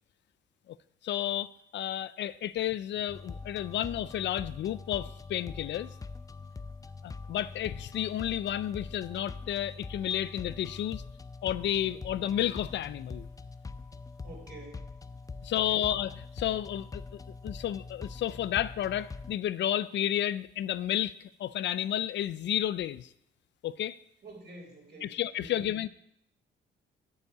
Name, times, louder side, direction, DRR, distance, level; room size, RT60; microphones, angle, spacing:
voice 1, 1.0-5.9 7.0-11.0 11.4-13.3 15.4-23.1 23.6-24.0 25.0-25.9, left 11 dB, 65° left, 17 dB, 0.5 m, -31 dB
sound 1, 3.1-19.4, left 4 dB, 15° left, 0.5 m, -43 dB
voice 2, 14.2-14.8 15.5-15.8 24.2-25.1 25.4-25.7, right 2 dB, 55° right, 0 dB, 4.2 m, -48 dB
8.0 x 7.1 x 6.8 m, 0.73 s
cardioid pair, 90°, 20 cm